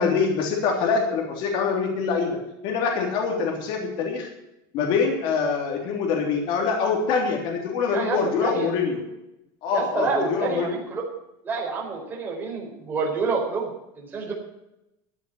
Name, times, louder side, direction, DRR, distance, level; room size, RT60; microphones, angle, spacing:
voice 1, 0.0-4.3 4.7-9.0 9.6-10.8, left 5 dB, 45° left, 1 dB, 3.2 m, -24 dB
voice 2, 7.9-8.7 9.7-11.0 11.4-13.7 14.0-14.3, right 4 dB, 15° right, -2 dB, 4.4 m, -28 dB
14.0 x 7.5 x 8.8 m, 0.88 s
supercardioid pair, 165°, 11 cm